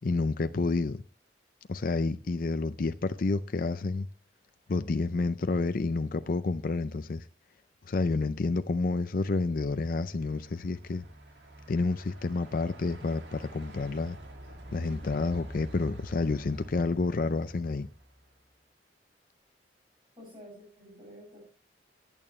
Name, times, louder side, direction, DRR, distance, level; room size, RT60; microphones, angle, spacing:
voice 1, 0.0-1.0 1.7-4.1 4.7-7.3 7.8-11.0 11.7-14.2 14.7-17.9, left 3 dB, 50° left, 0.5 m, -29 dB
Truck, 9.1-18.5, right 1 dB, 80° right, 2.1 m, -48 dB
voice 2, 20.2-21.4, equal, 25° right, 7.3 m, -49 dB
19.5 x 9.0 x 3.1 m
head